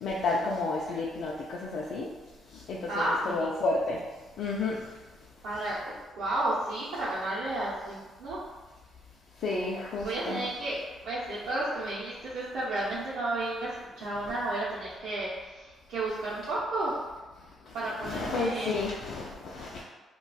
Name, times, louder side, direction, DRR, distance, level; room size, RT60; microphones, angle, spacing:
voice 1, 0.0-2.1 2.7-4.0 4.4-4.8 9.4-10.4 17.8-19.8, left 3 dB, 70° left, -3 dB, 0.4 m, -31 dB
voice 2, 2.9-3.5 5.4-8.4 10.0-17.0 17.7-18.7, right 2 dB, 80° right, -9 dB, 0.7 m, -32 dB
2.3 x 2.3 x 3.9 m, 1.2 s
cardioid pair, 90°, 0 cm